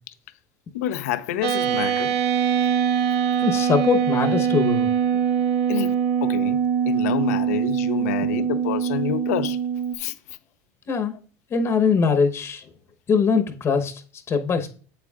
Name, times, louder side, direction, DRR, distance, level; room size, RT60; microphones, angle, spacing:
voice 1, 0.7-2.1 5.7-5.9 6.2-6.6 6.8-9.6 10.0-10.1, left 12 dB, 90° left, 0.7 m, -28 dB
sound 1, 1.4-10.0, right 8 dB, 60° right, 1.0 m, -23 dB
voice 2, 3.4-4.9 10.9-11.1 11.5-12.7 13.1-14.7, left 5 dB, 30° left, 1.0 m, -22 dB
8.2 x 8.0 x 2.4 m
supercardioid pair, 120°, 8 cm